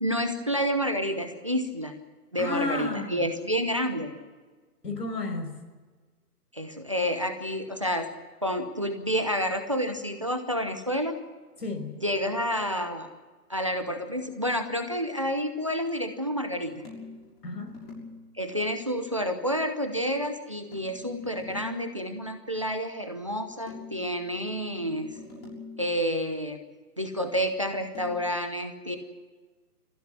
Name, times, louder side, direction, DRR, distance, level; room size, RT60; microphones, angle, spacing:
voice 1, 0.0-1.9 2.3-4.1 6.5-8.1 8.4-11.2 12.0-13.1 13.5-16.9 18.3-25.1 25.8-26.6 27.0-29.0, equal, 20° right, 8 dB, 0.8 m, -29 dB
voice 2, 2.4-3.2 4.8-5.5 11.6-11.9 17.4-17.8, left 2 dB, 90° left, 6 dB, 5.7 m, -32 dB
sound 1, 16.8-18.2 20.7-21.9 23.7-25.9 27.9-28.2, left 3 dB, 40° left, 6.8 m, -44 dB
21.5 x 15.0 x 9.8 m, 1.4 s
hypercardioid pair, 175°, 47 cm